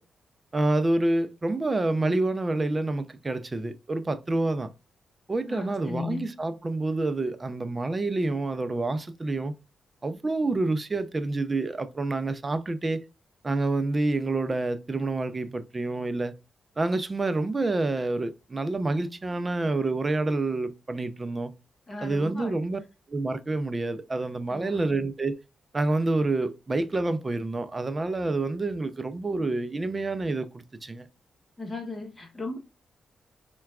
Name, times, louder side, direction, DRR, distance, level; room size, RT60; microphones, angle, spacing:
voice 1, 0.5-4.7 5.3-9.5 10.0-13.0 13.4-16.3 16.8-21.5 22.0-22.8 23.1-25.4 25.7-31.1, right 2 dB, 30° right, 0.4 m, -28 dB
voice 2, 5.5-6.3 21.9-22.6 24.5-24.9 31.6-32.6, left 3 dB, 30° left, 0.9 m, -36 dB
5.6 x 2.2 x 2.3 m
cardioid pair, 70°, 0 cm